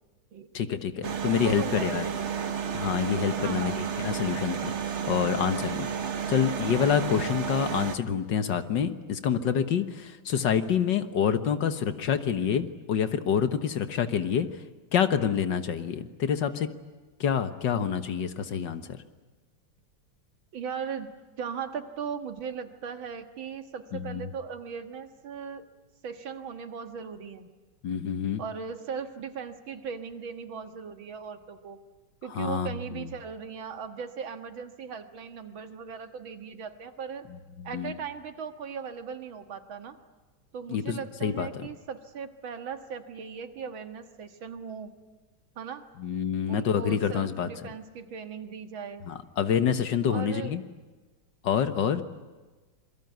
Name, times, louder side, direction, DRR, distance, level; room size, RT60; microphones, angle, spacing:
voice 1, 0.5-2.0 2.7-14.5 14.9-16.7 17.2-19.0 23.9-24.3 27.8-28.4 32.3-32.7 33.0-33.1 37.6-38.0 40.7-41.7 46.0-47.7 49.1-50.6 51.4-52.0, left 7 dB, 65° left, 10 dB, 1.8 m, -27 dB
sound 1, 1.0-8.0, right 7 dB, 40° right, 1.2 m, -32 dB
voice 2, 1.2-2.6 3.4-3.9 20.5-21.1 21.4-25.7 26.0-27.5 28.4-31.8 32.2-37.3 37.6-40.0 40.5-44.9 45.6-45.9 46.5-49.1 50.1-50.5, right 6 dB, 75° right, 8 dB, 2.3 m, -38 dB
27.0 x 23.0 x 9.3 m, 1.3 s
omnidirectional pair, 2.2 m